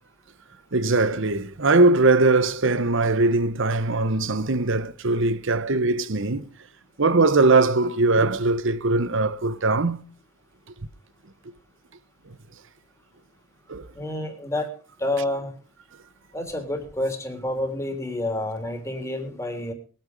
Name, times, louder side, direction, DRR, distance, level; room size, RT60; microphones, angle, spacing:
voice 1, 0.7-6.5 7.0-10.0 13.7-13.9, right 3 dB, 65° right, 1.1 m, -21 dB
voice 2, 13.9-14.7 15.0-15.5 16.3-19.7, left 1 dB, 15° left, 3.4 m, -29 dB
21.0 x 8.9 x 5.3 m
head